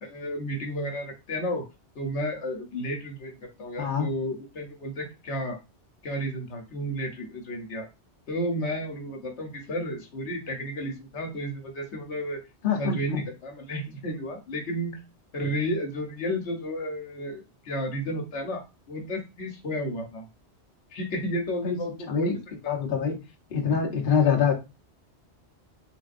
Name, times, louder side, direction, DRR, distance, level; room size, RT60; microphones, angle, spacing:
voice 1, 0.0-1.6 1.9-5.6 6.0-7.9 8.3-12.4 12.7-15.0 15.3-18.6 18.9-20.2 20.9-22.8 24.2-24.3, equal, 75° left, 1.2 m, -32 dB
voice 2, 12.6-13.2 21.6-21.8 22.1-22.3 22.7-23.2 23.5-24.5, left 6 dB, 50° left, 0.9 m, -24 dB
3.8 x 3.5 x 2.5 m
omnidirectional pair, 1.2 m